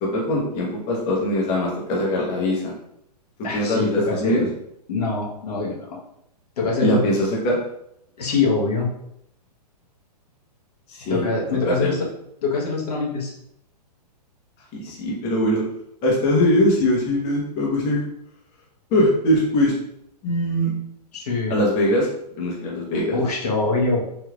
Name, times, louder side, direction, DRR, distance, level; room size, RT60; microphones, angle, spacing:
voice 1, 0.0-2.7 3.5-4.5 6.8-7.6 10.9-12.1 14.7-15.6 16.0-18.0 18.9-19.8 20.2-20.7 21.5-22.1 22.4-23.2, left 1 dB, 35° left, -3 dB, 0.9 m, -21 dB
voice 2, 3.4-4.5 4.9-6.0 6.6-7.0 8.2-8.9 11.1-12.1 12.4-13.3 21.1-21.6 23.1-24.0, left 3 dB, 70° left, -3 dB, 1.1 m, -24 dB
3.4 x 2.7 x 2.4 m, 0.75 s
hypercardioid pair, 120°, 21 cm